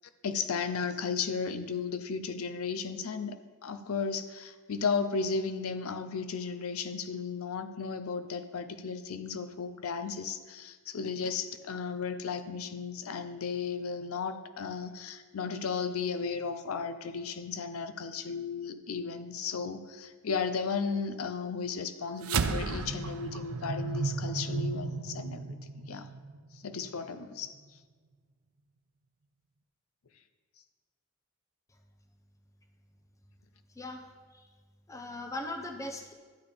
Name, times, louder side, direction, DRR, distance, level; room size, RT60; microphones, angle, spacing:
voice 1, 0.2-25.6 25.9-26.1 26.5-27.5, left 5 dB, 85° left, 10 dB, 0.5 m, -34 dB
sound 1, 22.2-26.9, right 4 dB, 80° right, 0.5 m, -33 dB
voice 2, 34.9-36.1, left 1 dB, 15° left, 4 dB, 0.7 m, -39 dB
11.5 x 8.5 x 3.4 m, 1.5 s
head